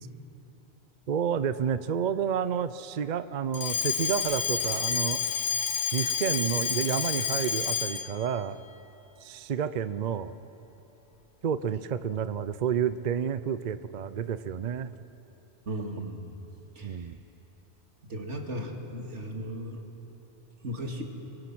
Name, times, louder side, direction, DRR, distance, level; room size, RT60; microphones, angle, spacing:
voice 1, 1.1-5.2 5.9-8.6 9.2-10.3 11.4-14.9 16.8-17.2, right 8 dB, 50° right, 13 dB, 0.6 m, -30 dB
Alarm, 3.5-8.2, left 6 dB, 90° left, 1.2 m, -29 dB
voice 2, 15.7-16.4 16.8-16.9 18.1-19.8 20.6-21.0, equal, 85° right, 1 dB, 2.5 m, -36 dB
25.0 x 22.5 x 6.1 m, 3.0 s
omnidirectional pair, 1.2 m